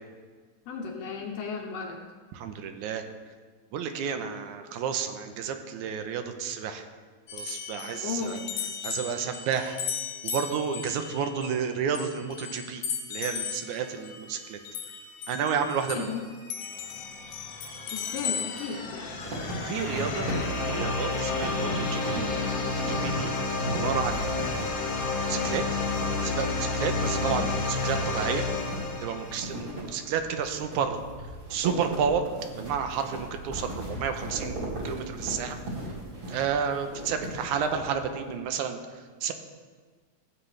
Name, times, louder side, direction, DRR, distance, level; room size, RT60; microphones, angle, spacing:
voice 1, 0.7-2.0 7.9-8.5 15.9-16.2 17.9-19.1, left 5 dB, 70° left, 2 dB, 1.7 m, -35 dB
voice 2, 2.3-3.1 3.7-6.9 7.3-8.4 8.8-9.8 10.2-12.8 13.1-14.6 15.3-16.1 19.6-22.2 22.6-23.3 23.7-24.6 25.2-25.8 26.2-28.4 29.0-31.0 31.5-32.2 32.6-35.6 36.3-39.3, right 7 dB, 80° right, 7 dB, 2.1 m, -31 dB
sound 1, 7.3-16.2 16.5-18.8, left 7 dB, 85° left, 2.5 m, -37 dB
sound 2, 16.0-29.8, left 3 dB, 50° left, 1.6 m, -31 dB
sound 3, 19.2-38.4, right 1 dB, 50° right, 3.0 m, -38 dB
15.5 x 8.0 x 3.2 m, 1.5 s
omnidirectional pair, 3.6 m